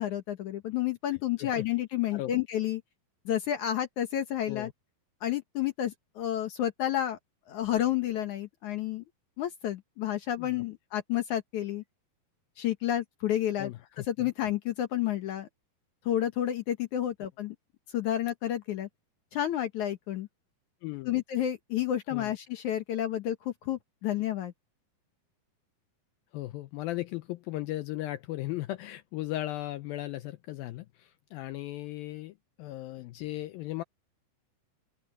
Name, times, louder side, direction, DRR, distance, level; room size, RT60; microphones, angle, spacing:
voice 1, 0.0-2.8 3.3-4.7 5.2-7.2 7.5-9.0 9.4-11.8 12.6-13.7 14.1-15.5 16.1-17.6 17.9-18.9 19.3-20.3 21.1-24.5, left 11 dB, 65° left, 2.0 m, -30 dB
voice 2, 13.6-14.3 20.8-21.1 22.1-22.3 26.3-33.8, left 16 dB, 90° left, 2.1 m, -37 dB
open air
omnidirectional pair, 4.8 m